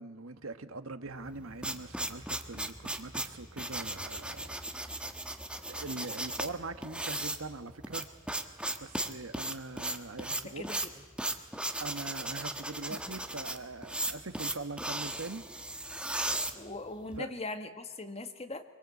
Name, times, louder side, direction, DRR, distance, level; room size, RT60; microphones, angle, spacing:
voice 1, 0.0-4.6 4.9-5.0 5.7-8.1 8.7-10.6 11.2-11.4 11.8-15.4 17.2-17.3, right 3 dB, 90° right, 9 dB, 1.6 m, -42 dB
sound 1, 1.2-17.2, right 1 dB, 5° right, 1.3 m, -36 dB
voice 2, 10.4-10.9 12.9-13.0 16.3-18.6, left 2 dB, 30° left, 7 dB, 1.8 m, -41 dB
25.5 x 23.5 x 8.6 m, 1.3 s
head